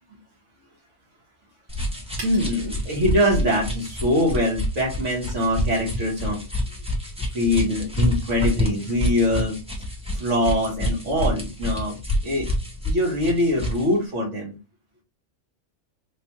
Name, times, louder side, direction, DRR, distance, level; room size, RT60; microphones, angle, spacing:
sound 1, 1.7-13.9, left 1 dB, 5° right, 0.8 m, -28 dB
voice 1, 2.2-6.4 7.3-9.6 10.1-12.5 12.8-14.5, left 1 dB, 75° right, -3 dB, 2.1 m, -23 dB
4.2 x 2.5 x 3.0 m, 0.28 s
omnidirectional pair, 1.3 m